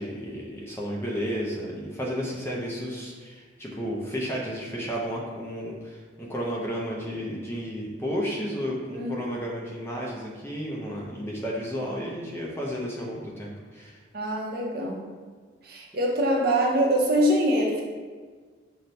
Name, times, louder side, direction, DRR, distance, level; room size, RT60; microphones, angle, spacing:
voice 1, 0.0-14.0, equal, 10° left, -4 dB, 0.4 m, -32 dB
voice 2, 14.1-15.0 15.6-17.8, right 1 dB, 50° right, -2 dB, 0.6 m, -24 dB
5.8 x 2.1 x 2.6 m, 1.5 s
head